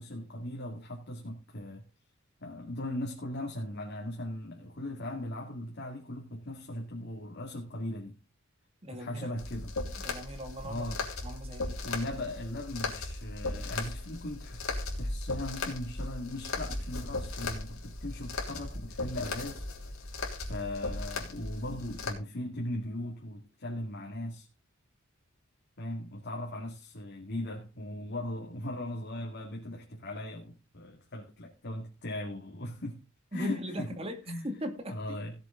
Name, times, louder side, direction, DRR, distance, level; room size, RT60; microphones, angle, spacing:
voice 1, 0.0-1.9 2.4-8.2 8.9-9.7 10.6-11.0 11.8-14.6 14.9-19.6 20.5-24.5 25.8-33.0 33.3-33.9 34.3-34.5 34.9-35.3, left 1 dB, 50° left, 2.2 m, -38 dB
voice 2, 8.8-9.3 10.0-10.9 11.2-11.8 33.3-35.0, equal, 30° right, 2.3 m, -39 dB
sound 1, 9.4-22.1, left 2 dB, 80° left, 3.3 m, -37 dB
17.5 x 7.3 x 3.8 m
head